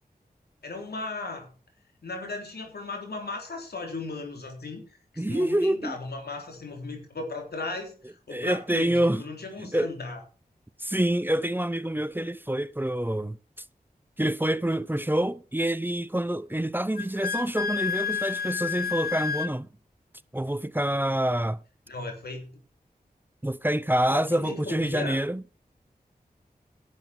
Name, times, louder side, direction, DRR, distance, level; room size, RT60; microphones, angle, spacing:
voice 1, 0.6-1.5 2.0-4.8 5.1-10.2 21.9-22.5 24.1-25.2, left 3 dB, 90° left, 3.7 m, -36 dB
voice 2, 5.2-5.9 8.3-9.2 9.6-9.9 10.8-13.4 14.2-19.7 20.3-21.6 23.4-25.4, right 1 dB, 10° right, 0.7 m, -26 dB
Wind instrument woodwind instrument, 16.9-19.5, left 7 dB, 75° left, 0.7 m, -30 dB
11.0 x 8.0 x 6.4 m
cardioid pair, 45°, 16 cm